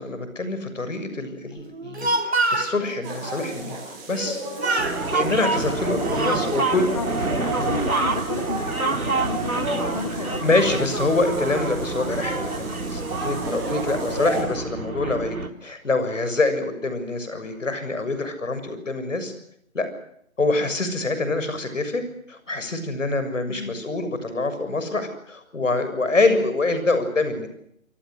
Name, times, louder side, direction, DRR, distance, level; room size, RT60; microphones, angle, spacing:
voice 1, 0.0-3.8 4.1-4.4 5.1-6.9 10.4-19.3 19.7-19.9 20.4-22.0 22.3-27.5, left 3 dB, 60° left, 9 dB, 7.1 m, -25 dB
Speech, 1.7-2.8 4.1-4.4 4.6-5.0 5.7-6.5, right 2 dB, 50° right, 2.9 m, -25 dB
sound 1, 3.0-14.4, right 2 dB, 10° right, 7.2 m, -33 dB
sound 2, 4.8-15.5, right 3 dB, 80° right, 3.3 m, -27 dB
voice 2, 5.9-10.4 23.5-23.8, left 5 dB, 25° left, 8 dB, 1.8 m, -33 dB
28.5 x 24.0 x 6.5 m, 0.73 s
figure-of-eight pair, 165°, 42 cm